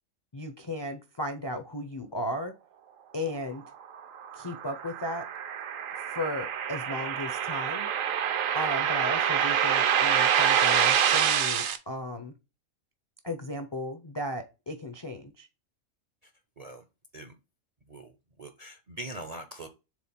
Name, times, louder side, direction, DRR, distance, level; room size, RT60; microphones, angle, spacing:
voice 1, 0.3-2.5 3.1-3.6 4.3-5.2 6.1-7.9 8.5-12.3 13.2-15.5, left 1 dB, 35° left, 8 dB, 0.4 m, -35 dB
sound 1, 3.9-11.8, right 8 dB, 75° right, 1.1 m, -26 dB
voice 2, 18.4-19.7, right 1 dB, 45° right, 6 dB, 0.5 m, -42 dB
4.7 x 3.6 x 5.6 m, 0.28 s
omnidirectional pair, 1.5 m